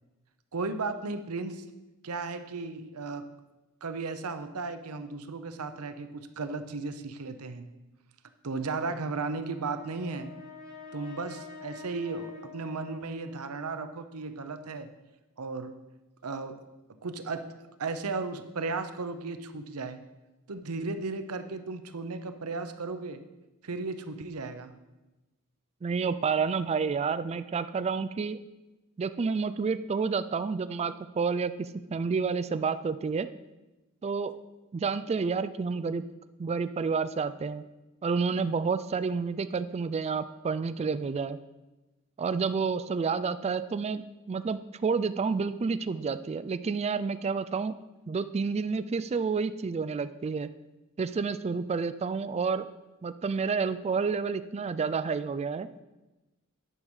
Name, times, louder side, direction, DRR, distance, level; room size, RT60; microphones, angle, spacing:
voice 1, 0.5-1.6 2.0-3.3 3.8-7.7 8.4-10.3 10.9-14.9 15.4-15.7 16.2-16.6 17.0-17.4 17.8-20.0 20.5-23.2 23.6-24.7, right 3 dB, 90° right, 9 dB, 0.8 m, -35 dB
Brass instrument, 9.2-13.6, left 3 dB, 5° left, 2.1 m, -47 dB
voice 2, 25.8-28.4 29.0-33.3 34.0-34.3 34.7-36.0 36.4-37.6 38.0-41.4 42.2-47.7 48.1-50.5 51.0-52.7 53.0-55.7, right 5 dB, 30° right, 13 dB, 0.3 m, -29 dB
9.9 x 6.4 x 5.4 m, 1.1 s
head